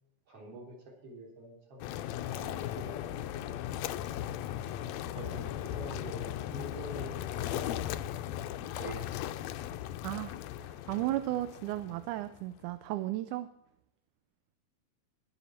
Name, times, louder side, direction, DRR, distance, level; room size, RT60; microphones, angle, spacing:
voice 1, 0.3-1.9 2.3-3.6 4.8-7.8 8.7-9.5, right 1 dB, 45° right, -1 dB, 4.2 m, -46 dB
sound 1, 1.8-12.6, left 11 dB, 85° left, 1.5 m, -37 dB
voice 2, 10.0-10.4 10.9-13.5, right 15 dB, 80° right, 12 dB, 2.0 m, -34 dB
20.5 x 7.1 x 4.3 m, 0.81 s
omnidirectional pair, 3.8 m